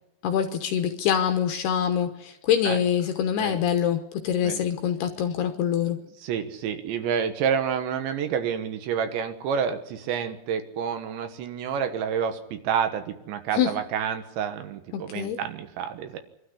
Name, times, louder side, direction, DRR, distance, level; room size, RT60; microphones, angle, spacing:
voice 1, 0.2-6.0 13.5-13.7 14.9-15.4, left 9 dB, 70° left, 7 dB, 2.7 m, -25 dB
voice 2, 6.2-16.2, right 7 dB, 70° right, 8 dB, 3.4 m, -29 dB
24.5 x 13.0 x 10.0 m, 0.85 s
omnidirectional pair, 5.7 m